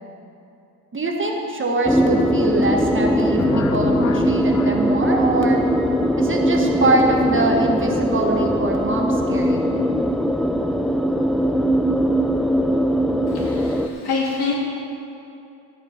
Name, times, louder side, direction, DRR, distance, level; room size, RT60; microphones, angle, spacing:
voice 1, 0.9-5.6 6.2-9.7, right 2 dB, 30° right, 1 dB, 1.4 m, -23 dB
sound 1, 1.9-13.9, equal, ahead, 0.3 m, -20 dB
sound 2, 3.4-6.3, left 5 dB, 40° left, 0.7 m, -32 dB
voice 2, 13.3-14.5, left 4 dB, 65° left, -3 dB, 2.9 m, -26 dB
13.5 x 9.7 x 4.5 m, 2.6 s
cardioid pair, 110°, 41 cm